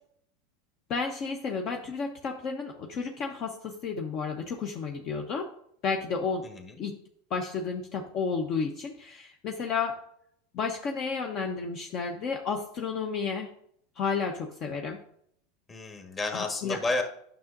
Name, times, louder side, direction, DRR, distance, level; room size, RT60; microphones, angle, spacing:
voice 1, 0.9-5.5 5.8-6.5 6.8-7.0 7.3-10.0 10.5-13.5 14.0-15.0 16.3-16.8, left 5 dB, 45° left, 3 dB, 0.7 m, -32 dB
voice 2, 6.4-6.8 15.7-17.0, left 2 dB, 25° left, 4 dB, 1.4 m, -31 dB
9.3 x 6.1 x 2.6 m, 0.68 s
hypercardioid pair, 100°, 0 cm